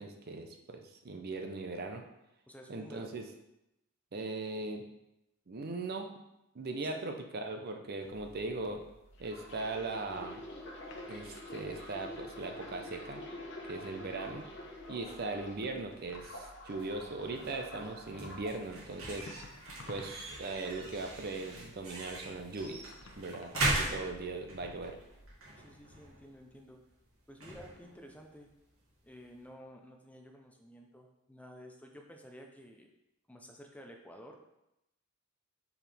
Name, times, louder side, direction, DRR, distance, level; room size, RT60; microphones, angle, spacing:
voice 1, 0.0-2.0 2.7-3.2 4.1-4.8 5.5-6.1 6.5-8.8 9.2-10.4 11.1-13.2 13.6-14.4 14.9-19.3 19.9-22.9 23.2-25.0, right 3 dB, 50° right, 4 dB, 0.6 m, -39 dB
voice 2, 2.5-3.2 6.8-7.2 23.6-24.1 25.6-26.8 27.3-28.5 29.0-32.9 33.3-34.4, equal, 5° left, 2 dB, 0.5 m, -52 dB
sound 1, 8.0-25.3, left 1 dB, 85° left, 0.8 m, -56 dB
sound 2, 9.2-15.7 16.1-18.6 19.2-19.4, left 1 dB, 60° left, 1.1 m, -47 dB
sound 3, 16.7-29.5, right 2 dB, 85° right, 1.5 m, -41 dB
5.8 x 4.7 x 3.5 m, 0.86 s
head